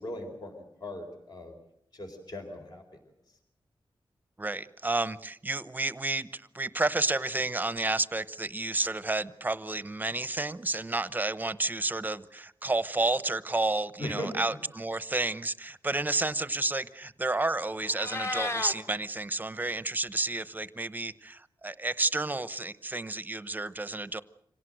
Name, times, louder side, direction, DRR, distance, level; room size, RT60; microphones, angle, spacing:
voice 1, 0.0-1.6 1.9-2.8 14.0-14.4, left 1 dB, 50° left, 3 dB, 4.4 m, -39 dB
voice 2, 4.4-24.2, right 2 dB, 20° right, 15 dB, 0.8 m, -31 dB
Meow, 17.8-18.7, left 2 dB, 30° left, 1.7 m, -32 dB
26.0 x 17.5 x 7.9 m, 0.74 s
wide cardioid pair, 120°, 9 cm